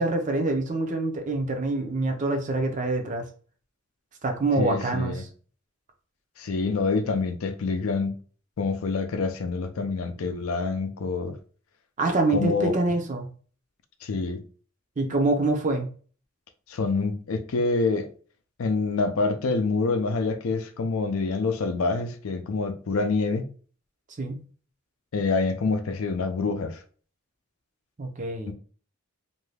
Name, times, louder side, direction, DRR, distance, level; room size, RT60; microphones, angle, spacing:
voice 1, 0.0-3.2 4.2-5.3 12.0-13.3 15.0-15.9 24.2-24.4 28.0-28.5, right 2 dB, 35° right, 0.6 m, -25 dB
voice 2, 4.6-5.2 6.4-8.1 8.6-11.4 12.3-12.8 14.0-14.4 16.7-18.1 18.6-23.4 25.1-26.8 28.5-28.6, left 4 dB, 70° left, 0.4 m, -26 dB
2.6 x 2.2 x 3.2 m
head